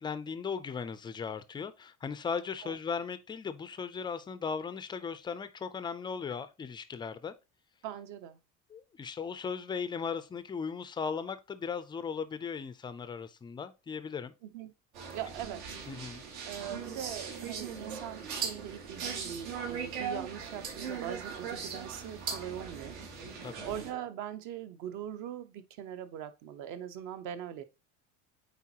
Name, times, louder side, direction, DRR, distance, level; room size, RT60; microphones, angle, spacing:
voice 1, 0.0-7.3 8.7-14.3 15.9-16.2 23.4-23.7, left 6 dB, 15° left, 0.3 m, -37 dB
voice 2, 7.8-8.4 14.4-14.7 15.1-15.8 16.4-23.0 23.6-27.6, right 10 dB, 60° right, 0.9 m, -41 dB
sound 1, 14.9-23.9, right 6 dB, 85° right, 2.7 m, -39 dB
8.4 x 4.1 x 2.8 m
cardioid pair, 160°, 33 cm